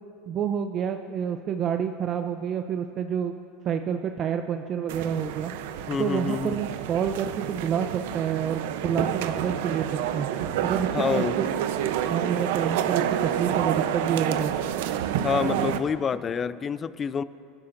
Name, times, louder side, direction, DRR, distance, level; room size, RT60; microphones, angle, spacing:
voice 1, 0.3-3.4 3.6-5.5 6.0-9.9 10.1-10.3 10.6-11.5 12.1-14.5, right 8 dB, 40° right, 6 dB, 0.5 m, -28 dB
sound 1, 4.9-15.8, right 10 dB, 80° right, 0.7 m, -29 dB
voice 2, 5.9-6.6 10.9-11.4 15.2-17.2, left 6 dB, 30° left, 17 dB, 0.4 m, -27 dB
24.0 x 13.0 x 2.6 m, 2.6 s
supercardioid pair, 120°, 0 cm